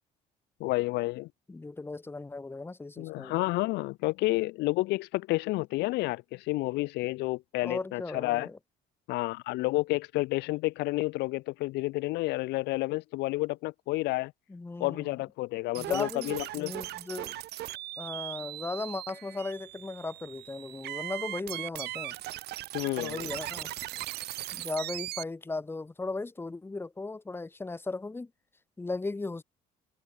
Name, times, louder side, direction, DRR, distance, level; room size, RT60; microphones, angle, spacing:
voice 1, 0.6-1.3 3.0-8.5 9.1-14.3 14.8-16.7 22.7-23.3, left 20 dB, 85° left, 0.6 m, -30 dB
voice 2, 1.5-3.3 7.6-8.6 14.5-15.1 15.7-17.4 18.0-22.1 23.0-23.7 24.5-28.3 28.8-29.4, left 3 dB, 15° left, 1.1 m, -37 dB
sound 1, 15.7-25.2, right 16 dB, 75° right, 2.4 m, -39 dB
cardioid pair, 110°, 17 cm